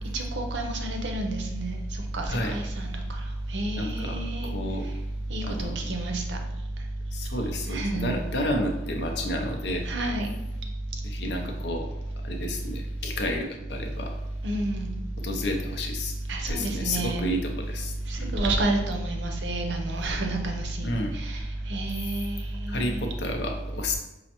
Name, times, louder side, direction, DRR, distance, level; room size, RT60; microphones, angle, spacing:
voice 1, 0.1-1.8 2.1-2.9 3.5-4.5 5.3-6.4 7.7-8.1 9.8-10.3 14.4-14.9 16.3-17.2 18.1-23.1, right 2 dB, 70° right, 2 dB, 0.6 m, -29 dB
voice 2, 3.8-4.9 5.4-5.9 7.1-9.9 11.0-11.9 12.2-14.1 15.2-16.2 16.5-18.3 20.8-21.2 22.7-24.0, left 1 dB, 60° left, 2 dB, 0.5 m, -31 dB
5.4 x 2.1 x 2.9 m, 0.96 s
head